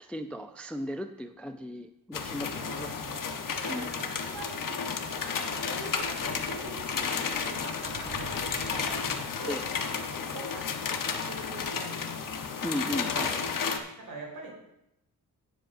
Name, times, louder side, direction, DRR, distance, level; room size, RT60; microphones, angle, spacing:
voice 1, 0.0-2.9 3.7-3.9 9.5-9.7 12.6-13.4, left 1 dB, 5° left, 8 dB, 0.3 m, -36 dB
sound 1, 2.1-13.8, left 5 dB, 55° left, 0.9 m, -32 dB
voice 2, 2.6-4.8 5.3-9.6 10.3-12.5 14.0-14.5, right 1 dB, 70° right, -2 dB, 4.2 m, -44 dB
Sink (filling or washing), 5.9-9.7, right 2 dB, 30° right, 2.5 m, -47 dB
17.0 x 7.6 x 2.6 m, 0.83 s
wide cardioid pair, 160°, 38 cm